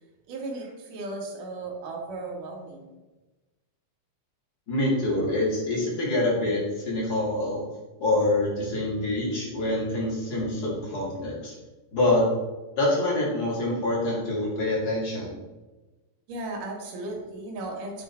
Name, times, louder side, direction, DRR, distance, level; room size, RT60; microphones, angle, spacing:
voice 1, 0.3-3.0 16.3-18.0, right 2 dB, 80° right, 1 dB, 2.9 m, -36 dB
voice 2, 4.7-7.6 8.0-11.5 11.9-12.2 12.8-15.4, left 2 dB, 35° left, -4 dB, 2.1 m, -26 dB
8.2 x 4.7 x 4.2 m, 1.1 s
omnidirectional pair, 3.7 m